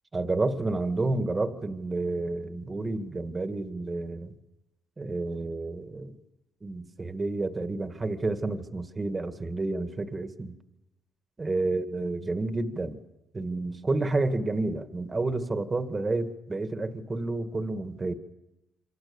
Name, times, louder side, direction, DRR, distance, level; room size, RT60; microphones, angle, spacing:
voice 1, 0.1-4.4 5.0-6.2 6.6-10.6 11.4-13.0 13.3-18.1, right 2 dB, 25° right, 8 dB, 2.1 m, -30 dB
27.0 x 25.5 x 7.3 m, 0.95 s
cardioid pair, 90°, 0 cm